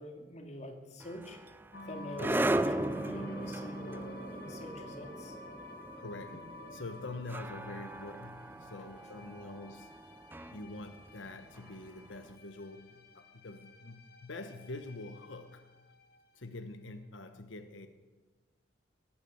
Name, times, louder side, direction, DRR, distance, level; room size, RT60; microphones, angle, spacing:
voice 1, 0.0-1.4 1.9-2.3 2.8-4.0 4.3-5.4, left 1 dB, 40° left, 2.3 m, -46 dB
sound 1, 1.0-12.1, right 1 dB, 10° right, 0.5 m, -38 dB
sound 2, 1.7-16.2, equal, 55° left, 1.9 m, -49 dB
voice 2, 2.2-2.5 6.0-9.9 10.5-15.7 16.3-17.9, left 2 dB, 85° left, 1.1 m, -45 dB
17.5 x 10.0 x 8.0 m
head